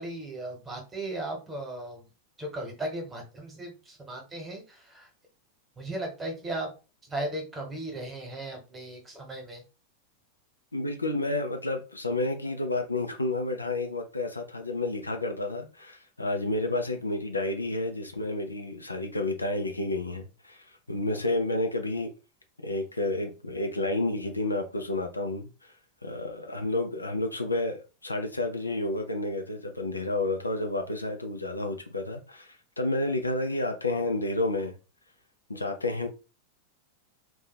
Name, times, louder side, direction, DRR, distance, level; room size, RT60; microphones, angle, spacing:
voice 1, 0.0-2.0 2.4-5.1 5.8-6.7 7.0-9.6, right 1 dB, 15° right, 1.1 m, -36 dB
voice 2, 10.7-22.1 22.6-25.7 26.0-34.8 35.5-36.1, left 2 dB, 80° left, 0.5 m, -30 dB
2.7 x 2.3 x 4.1 m
figure-of-eight pair, 90°, 0 cm